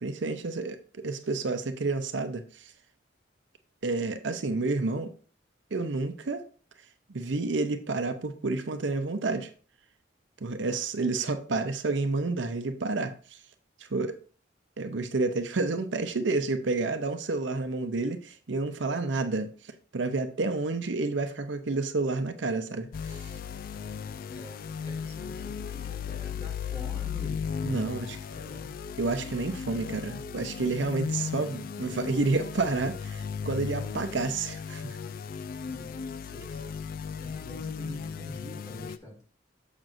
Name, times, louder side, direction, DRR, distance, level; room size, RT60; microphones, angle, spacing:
voice 1, 0.0-2.7 3.8-5.1 5.7-6.4 7.1-9.5 10.4-13.4 13.8-14.2 14.8-19.5 19.9-23.3 27.6-28.2 29.0-35.0, right 3 dB, 70° right, 0.7 m, -30 dB
sound 1, 22.9-39.0, left 6 dB, 50° left, 0.3 m, -36 dB
voice 2, 24.9-28.7 35.7-36.8 37.2-39.2, equal, 20° left, 2.5 m, -46 dB
7.5 x 6.0 x 2.6 m
head